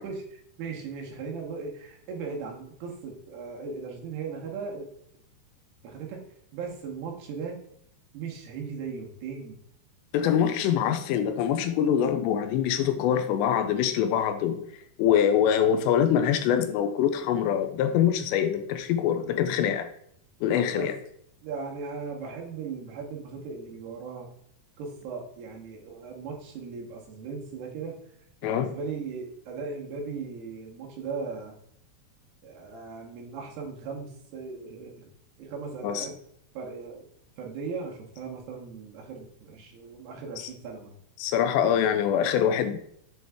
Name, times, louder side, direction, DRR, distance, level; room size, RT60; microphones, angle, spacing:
voice 1, 0.0-4.9 5.8-6.2 6.5-7.6 8.1-9.6 10.4-10.6 20.5-20.9 21.4-24.3 24.8-28.0 28.4-31.5 32.4-35.1 35.4-36.1 36.5-37.0 37.4-40.9, right 5 dB, 75° right, -1 dB, 2.9 m, -38 dB
voice 2, 10.1-14.6 15.0-19.9 20.4-21.0 28.4-28.8 35.8-36.1 41.2-42.8, left 9 dB, 85° left, 8 dB, 2.7 m, -24 dB
7.6 x 3.9 x 3.4 m, 0.70 s
omnidirectional pair, 5.1 m